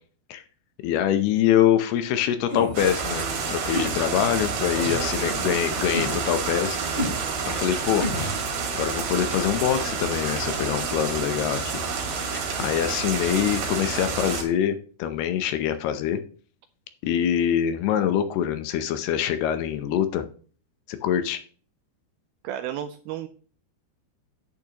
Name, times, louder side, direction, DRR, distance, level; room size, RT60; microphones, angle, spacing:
voice 1, 0.8-6.8 7.5-8.1 8.7-11.8 12.3-16.2 17.0-20.3 20.9-21.4, left 10 dB, 80° left, 10 dB, 2.6 m, -24 dB
sound 1, 2.5-2.8 3.6-3.9 4.7-5.0 5.9-6.2 6.9-7.2 8.0-8.4, left 1 dB, 15° left, 3.4 m, -30 dB
sound 2, 2.7-14.4, right 5 dB, 70° right, 4.1 m, -29 dB
voice 2, 5.2-5.6 22.4-23.3, right 11 dB, 85° right, 9 dB, 2.2 m, -33 dB
10.5 x 9.0 x 2.9 m, 0.41 s
omnidirectional pair, 4.9 m